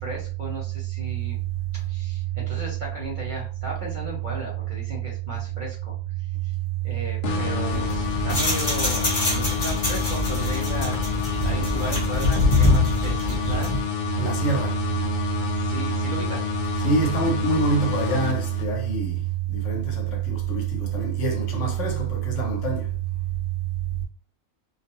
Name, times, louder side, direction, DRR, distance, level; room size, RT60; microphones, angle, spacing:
voice 1, 0.0-1.4 1.7-6.5 6.8-11.0 11.4-13.8 15.5-16.5, right 1 dB, 50° right, 0.6 m, -35 dB
sound 1, 7.2-19.0, left 8 dB, 85° left, 0.4 m, -29 dB
sound 2, 7.7-13.9, left 2 dB, 40° left, 0.7 m, -24 dB
voice 2, 14.2-15.1 16.8-19.2 19.5-22.9, right 4 dB, 70° left, 1.0 m, -25 dB
2.3 x 2.0 x 2.9 m
omnidirectional pair, 1.4 m